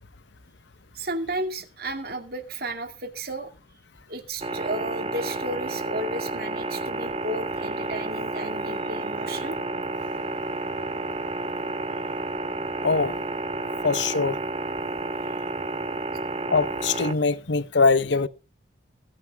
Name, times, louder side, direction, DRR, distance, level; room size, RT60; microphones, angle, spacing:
voice 1, 0.9-3.5 4.1-9.6, right 1 dB, 55° right, 2.3 m, -33 dB
sound 1, 4.4-17.1, right 2 dB, 30° right, 1.0 m, -31 dB
voice 2, 12.8-13.2 13.8-14.4 16.5-18.3, left 4 dB, 75° left, 0.9 m, -22 dB
21.5 x 12.0 x 2.4 m
head